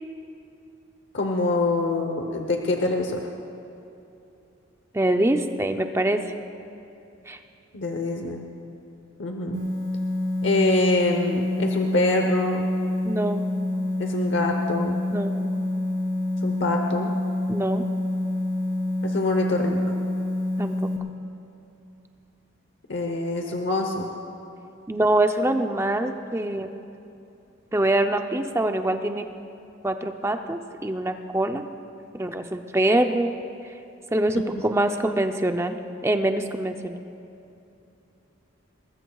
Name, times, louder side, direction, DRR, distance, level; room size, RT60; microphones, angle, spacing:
voice 1, 1.1-3.3 7.7-8.5 9.2-9.6 10.4-12.7 14.0-15.0 16.4-17.1 19.0-19.8 22.9-24.1 34.3-34.4, left 2 dB, 60° left, 3 dB, 0.9 m, -25 dB
voice 2, 4.9-6.2 7.3-7.4 13.1-13.4 15.1-15.4 17.5-17.8 20.6-20.8 24.9-26.7 27.7-29.3 29.8-31.6 32.1-33.4 34.1-35.8 36.0-37.0, right 1 dB, 15° right, 6 dB, 0.5 m, -24 dB
sound 1, 9.5-21.0, left 1 dB, 75° right, 1.9 m, -27 dB
21.5 x 20.5 x 2.4 m, 2.8 s
head